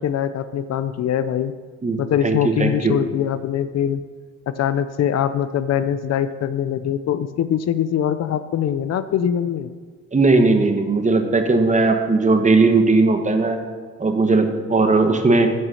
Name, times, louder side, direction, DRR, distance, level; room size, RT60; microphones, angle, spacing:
voice 1, 0.0-1.5 2.0-4.0 4.5-9.7, left 9 dB, 60° left, 12 dB, 0.6 m, -22 dB
voice 2, 2.2-2.9 10.1-13.6 14.0-15.5, right 3 dB, 25° right, 6 dB, 1.2 m, -17 dB
9.1 x 6.0 x 6.4 m, 1.5 s
cardioid pair, 90°, 30 cm